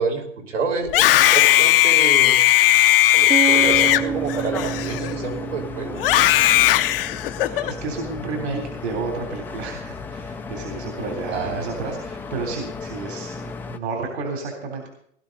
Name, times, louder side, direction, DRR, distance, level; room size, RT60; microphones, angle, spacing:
voice 1, 0.0-2.4 3.0-6.2 11.3-11.7, right 4 dB, 80° right, 1 dB, 5.3 m, -29 dB
Screaming, 0.8-5.3 6.0-7.7, left 14 dB, 50° left, 0.9 m, -17 dB
sound 1, 3.3-7.2, right 8 dB, 15° right, 0.9 m, -29 dB
sound 2, 3.6-13.8, left 4 dB, 5° left, 0.6 m, -35 dB
voice 2, 7.5-14.9, right 4 dB, 60° right, 2 dB, 3.6 m, -31 dB
19.0 x 12.5 x 4.0 m, 0.68 s
hypercardioid pair, 135°, 37 cm